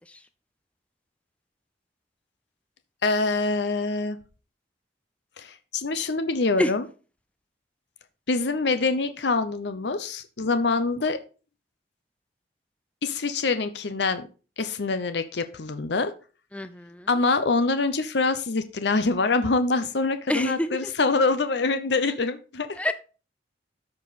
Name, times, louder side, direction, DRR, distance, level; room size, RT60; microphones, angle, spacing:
voice 1, 3.0-4.2 5.4-6.9 8.3-11.2 13.0-14.3 14.6-16.1 17.1-22.7, left 3 dB, 65° left, 10 dB, 0.7 m, -25 dB
voice 2, 16.5-17.1 20.3-20.7 22.8-22.9, left 1 dB, 5° left, 10 dB, 0.5 m, -26 dB
13.0 x 4.9 x 4.1 m, 0.35 s
head